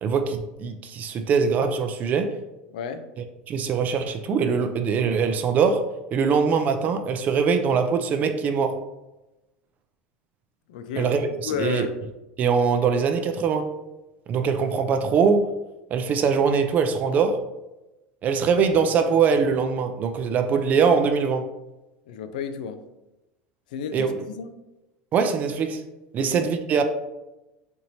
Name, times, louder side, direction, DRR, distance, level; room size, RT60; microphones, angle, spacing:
voice 1, 0.0-2.3 3.5-5.8 6.1-8.8 11.0-11.9 12.4-13.8 14.3-15.5 15.9-17.4 18.2-21.5 23.9-24.1 25.1-25.8 26.1-26.8, right 6 dB, 40° right, 7 dB, 0.4 m, -22 dB
voice 2, 2.7-3.0 10.7-11.2 11.4-12.0 22.1-22.8 23.7-24.6 26.2-26.4, left 6 dB, 85° left, 10 dB, 0.4 m, -32 dB
4.4 x 2.8 x 2.7 m, 0.99 s
supercardioid pair, 115°, 4 cm